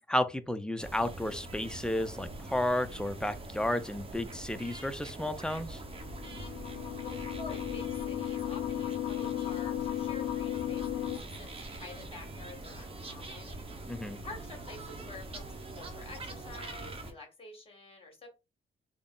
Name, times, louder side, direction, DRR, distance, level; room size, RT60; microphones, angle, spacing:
voice 1, 0.1-5.8 13.9-14.2, left 1 dB, 5° left, 0.4 m, -32 dB
sound 1, 0.8-17.1, right 2 dB, 30° right, 0.8 m, -44 dB
sound 2, 5.9-11.2, left 12 dB, 55° left, 0.6 m, -35 dB
voice 2, 7.0-13.6 14.2-18.3, left 3 dB, 30° left, 1.9 m, -48 dB
3.5 x 2.0 x 3.7 m
cardioid pair, 90°, 20 cm